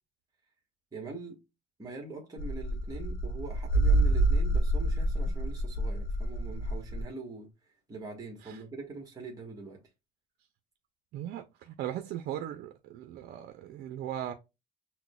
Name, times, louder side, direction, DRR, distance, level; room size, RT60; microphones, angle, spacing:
voice 1, 0.9-1.4 1.8-7.5 7.9-9.8, right 3 dB, 20° right, 1.2 m, -43 dB
sound 1, 2.4-7.0, right 1 dB, 65° left, 1.0 m, -27 dB
voice 2, 11.1-14.3, right 11 dB, 70° right, 0.4 m, -38 dB
5.9 x 2.0 x 2.2 m
cardioid pair, 110°, 17 cm